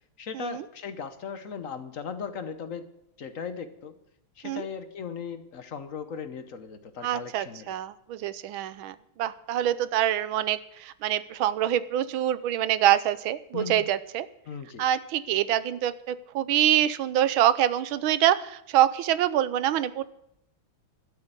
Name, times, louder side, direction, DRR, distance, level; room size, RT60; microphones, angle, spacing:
voice 1, 0.2-2.9 3.2-4.0 4.4-7.7 13.5-13.8 14.5-14.8, left 6 dB, 50° left, 10 dB, 1.1 m, -37 dB
voice 2, 7.0-14.3 14.8-20.0, right 12 dB, 80° right, 15 dB, 1.5 m, -25 dB
12.5 x 8.3 x 8.2 m, 0.80 s
omnidirectional pair, 2.3 m